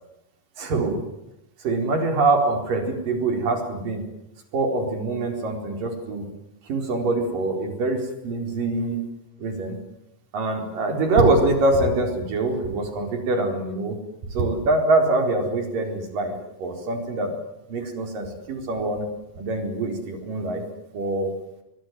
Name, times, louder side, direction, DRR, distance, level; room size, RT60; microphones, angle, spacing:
voice 1, 0.6-1.0 1.6-4.0 4.5-6.2 6.7-9.0 9.4-9.8 10.3-14.0 14.3-16.3 16.6-17.3 17.7-19.1 19.4-20.6 20.9-21.4, right 2 dB, 65° right, 5 dB, 5.9 m, -24 dB
23.0 x 23.0 x 9.4 m, 0.86 s
omnidirectional pair, 4.1 m